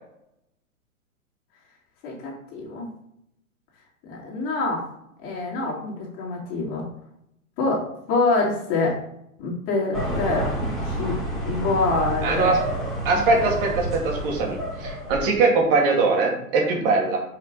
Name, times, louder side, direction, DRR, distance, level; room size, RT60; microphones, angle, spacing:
voice 1, 2.0-2.9 4.0-4.8 5.2-6.8 7.6-9.0 9.4-12.5 13.1-13.2, left 3 dB, 30° left, -3 dB, 2.7 m, -26 dB
sound 1, 9.9-15.5, right 1 dB, ahead, 2.4 m, -29 dB
voice 2, 12.2-12.6 13.0-17.2, right 3 dB, 40° right, 0 dB, 2.2 m, -21 dB
5.8 x 5.7 x 3.9 m, 0.76 s
figure-of-eight pair, 120°, 44 cm